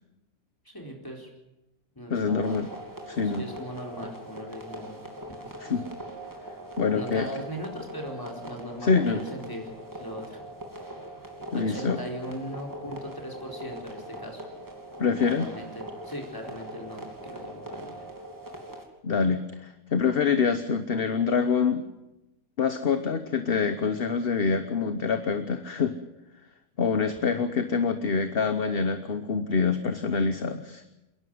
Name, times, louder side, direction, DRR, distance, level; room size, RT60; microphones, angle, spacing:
voice 1, 0.6-1.3 2.0-2.6 3.2-5.0 5.4-5.5 6.9-9.6 9.9-10.5 11.5-14.5 15.2-18.0 26.9-27.4, equal, 15° left, 1 dB, 4.4 m, -39 dB
voice 2, 2.1-2.7 3.1-3.4 5.6-5.9 6.8-7.3 8.8-9.2 11.5-12.0 15.0-15.5 19.0-21.8 22.6-25.9 26.8-30.8, left 5 dB, 55° left, 9 dB, 1.2 m, -25 dB
sound 1, 2.4-18.8, right 1 dB, 15° right, 3.0 m, -41 dB
28.5 x 11.5 x 9.5 m, 0.95 s
omnidirectional pair, 1.3 m